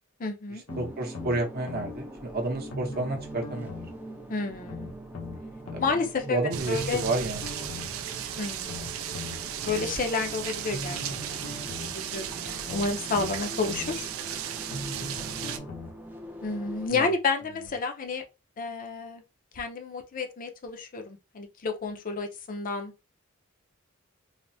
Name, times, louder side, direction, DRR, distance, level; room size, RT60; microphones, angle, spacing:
voice 1, 0.2-0.6 4.3-4.9 5.8-6.4 6.7-7.0 8.4-9.0 9.6-11.0 11.3-11.4 11.8-14.1 16.4-18.2 18.6-19.2 19.5-22.9, left 4 dB, 40° left, 0.5 m, -30 dB
sound 1, 0.7-1.9 2.7-4.0 4.7-5.9 6.7-7.9 8.7-9.9 10.7-11.9 12.7-13.9 14.7-16.0 16.7-16.8, left 2 dB, 85° left, 0.8 m, -39 dB
sound 2, 0.7-16.9, equal, 10° right, 0.4 m, -44 dB
voice 2, 0.8-3.8 5.7-5.8 6.3-7.9 15.2-15.6 16.9-17.1, right 2 dB, 50° right, 0.8 m, -31 dB
sound 3, 6.5-15.6, right 9 dB, 80° right, 0.4 m, -35 dB
3.3 x 2.0 x 2.6 m
head